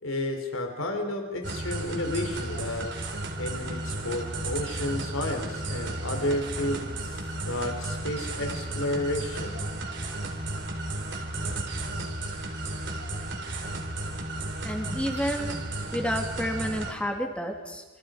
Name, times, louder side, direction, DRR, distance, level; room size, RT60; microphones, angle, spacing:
voice 1, 0.0-2.9 3.4-9.6, left 1 dB, 90° left, 4 dB, 3.8 m, -31 dB
sound 1, 1.4-16.9, right 2 dB, 60° right, 3.6 m, -33 dB
voice 2, 14.6-15.6 15.9-17.8, equal, 5° left, 2 dB, 2.8 m, -30 dB
27.5 x 27.0 x 5.1 m, 1.3 s
head